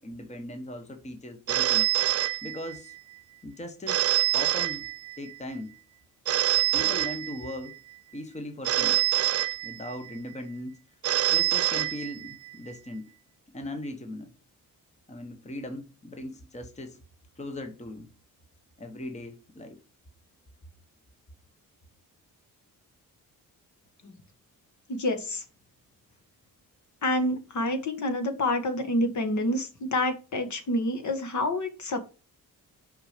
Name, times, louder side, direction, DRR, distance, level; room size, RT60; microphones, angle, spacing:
voice 1, 0.0-1.9 2.4-3.0 3.4-4.9 5.2-5.7 6.7-7.8 8.1-9.0 9.6-10.8 11.3-13.1 13.5-14.3 15.1-17.0 17.4-18.1 18.8-19.8, left 1 dB, 20° left, 1.1 m, -39 dB
Telephone, 1.5-3.0 3.9-5.4 6.3-7.8 8.6-10.1 11.0-12.5, right 13 dB, 45° right, 0.4 m, -26 dB
voice 2, 24.9-25.4 27.0-32.0, left 1 dB, 55° left, 1.5 m, -28 dB
6.0 x 5.2 x 5.0 m
cardioid pair, 110°, 36 cm